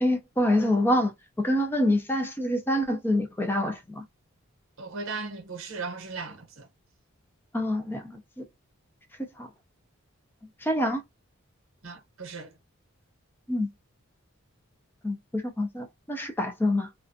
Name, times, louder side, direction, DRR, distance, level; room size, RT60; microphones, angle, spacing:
voice 1, 0.0-1.1 1.4-4.0 7.5-8.4 9.4-9.5 10.6-11.0 13.5-13.7 15.0-16.9, left 1 dB, 10° left, 0.3 m, -26 dB
voice 2, 4.8-6.7 11.8-12.5, right 4 dB, 65° right, 0.8 m, -37 dB
2.4 x 2.2 x 2.4 m
head